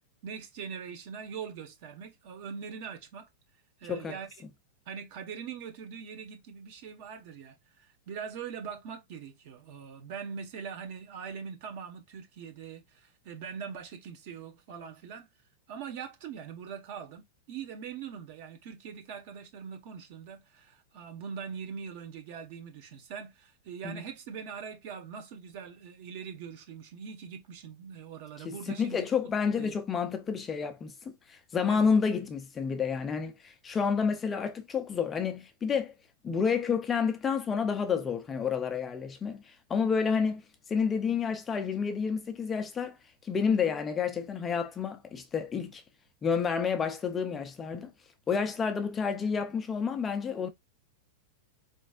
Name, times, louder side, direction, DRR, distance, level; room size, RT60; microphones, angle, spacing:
voice 1, 0.2-3.3 3.8-4.3 4.9-15.3 15.7-29.7 31.7-31.9, right 7 dB, 50° right, 1.2 m, -42 dB
voice 2, 3.8-4.2 23.8-24.0 28.4-30.9 31.3-35.9 36.2-40.4 40.7-43.0 43.2-45.8 46.2-47.9 48.3-50.5, left 6 dB, 15° left, 0.4 m, -29 dB
4.4 x 3.1 x 2.4 m
supercardioid pair, 155°, 0 cm